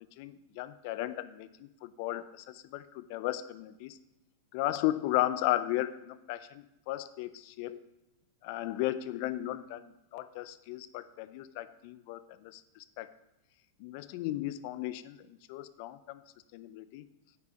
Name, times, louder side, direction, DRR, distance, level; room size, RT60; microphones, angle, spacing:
voice 1, 0.2-4.0 4.5-7.8 8.4-13.1 13.8-16.2 16.5-17.0, left 15 dB, 55° left, 13 dB, 0.5 m, -35 dB
8.3 x 4.8 x 5.1 m, 0.94 s
hypercardioid pair, 115°, 0 cm